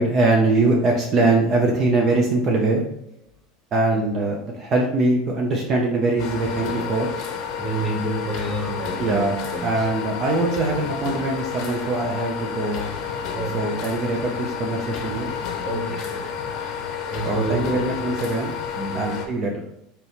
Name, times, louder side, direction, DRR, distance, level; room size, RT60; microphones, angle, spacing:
voice 1, 0.0-2.8 3.7-7.1 9.0-9.4 9.6-12.9 13.5-15.3 17.2-18.5 18.9-19.5, right 2 dB, 35° right, 0 dB, 0.6 m, -22 dB
sound 1, 6.2-19.3, left 7 dB, 50° left, 0.7 m, -30 dB
voice 2, 7.6-9.9 13.3-13.8 15.6-16.5 17.1-17.8 18.7-19.2, right 2 dB, 10° right, -1 dB, 1.0 m, -29 dB
3.3 x 2.9 x 4.1 m, 0.79 s
supercardioid pair, 130°, 0 cm